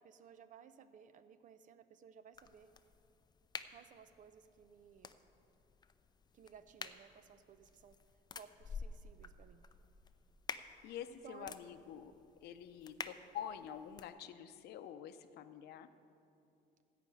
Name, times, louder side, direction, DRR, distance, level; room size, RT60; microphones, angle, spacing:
voice 1, 0.0-2.7 3.7-5.1 6.3-8.0 8.4-9.6 11.2-11.6, right 7 dB, 50° right, 12 dB, 0.7 m, -58 dB
sound 1, 2.3-14.1, left 5 dB, 25° left, 0.5 m, -51 dB
voice 2, 10.8-12.1 12.4-15.9, left 9 dB, 75° left, 11 dB, 0.7 m, -47 dB
14.0 x 5.1 x 9.0 m, 2.6 s
cardioid pair, 110°, 17 cm